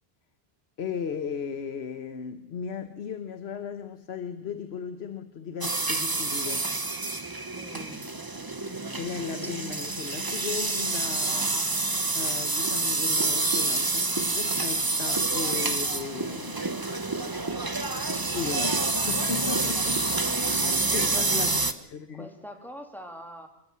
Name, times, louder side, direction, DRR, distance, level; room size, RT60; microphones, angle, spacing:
voice 1, 0.8-6.7 8.9-16.6 18.3-20.4 20.6-22.3, left 6 dB, 80° left, 10 dB, 1.3 m, -36 dB
sound 1, 5.6-21.7, right 3 dB, 20° right, 1.0 m, -28 dB
voice 2, 7.6-8.1 20.9-21.5 22.1-23.5, equal, ahead, 4 dB, 2.9 m, -43 dB
26.0 x 14.0 x 7.5 m, 0.85 s
omnidirectional pair, 1.1 m